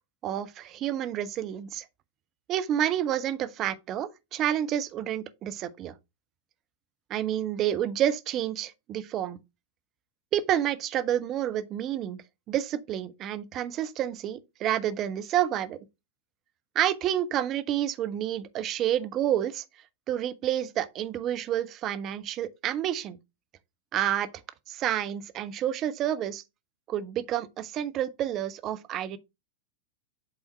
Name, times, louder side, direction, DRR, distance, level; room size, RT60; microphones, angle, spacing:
voice 1, 0.2-1.8 2.5-5.9 7.1-9.4 10.3-12.2 12.5-15.8 16.7-19.6 20.1-23.2 23.9-24.3 24.7-26.4 26.9-29.2, right 11 dB, 35° right, 0.6 m, -29 dB
7.9 x 3.6 x 4.4 m
figure-of-eight pair, 90°, 0 cm